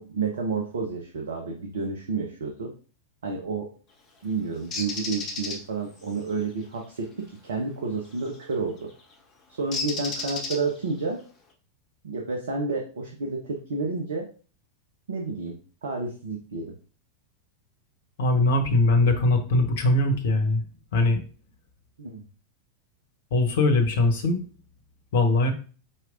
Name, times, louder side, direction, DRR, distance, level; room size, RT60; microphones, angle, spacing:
voice 1, 0.0-2.7 3.2-3.7 4.2-8.9 9.5-11.2 12.0-14.3 15.1-16.7 22.0-22.2, right 4 dB, 65° right, 1 dB, 0.8 m, -30 dB
Bird, 4.7-5.6 8.2-8.4 9.7-10.9, left 3 dB, 30° left, 1.2 m, -32 dB
voice 2, 18.2-20.6 20.9-21.2 23.3-24.4 25.1-25.5, left 2 dB, 55° left, 6 dB, 0.9 m, -21 dB
4.6 x 4.1 x 2.5 m, 0.38 s
figure-of-eight pair, 90°, 0 cm